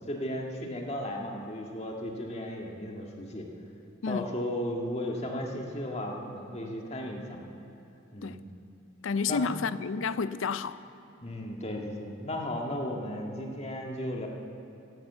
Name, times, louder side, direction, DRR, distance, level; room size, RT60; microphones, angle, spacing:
voice 1, 0.1-3.5 4.1-7.4 8.1-8.4 9.3-9.6 11.2-14.3, left 1 dB, 30° left, 1.8 m, -35 dB
voice 2, 9.0-10.8, left 5 dB, 80° left, 0.5 m, -30 dB
15.5 x 10.5 x 8.0 m
head